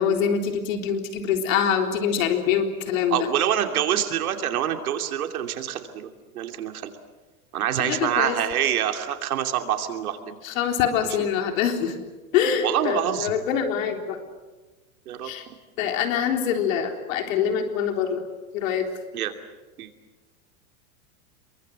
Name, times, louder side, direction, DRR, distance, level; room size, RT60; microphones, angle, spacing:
voice 1, 0.0-3.3 7.8-8.4 10.4-11.9 12.3-14.2 15.2-15.5 15.8-18.2 18.5-18.8, left 8 dB, 65° left, 4 dB, 3.9 m, -24 dB
voice 2, 3.1-6.1 6.3-6.9 7.5-10.4 12.6-13.3 15.1-15.3 19.1-19.3 19.8-19.9, right 10 dB, 85° right, 5 dB, 2.9 m, -26 dB
27.5 x 23.0 x 7.7 m, 1.2 s
supercardioid pair, 140°, 42 cm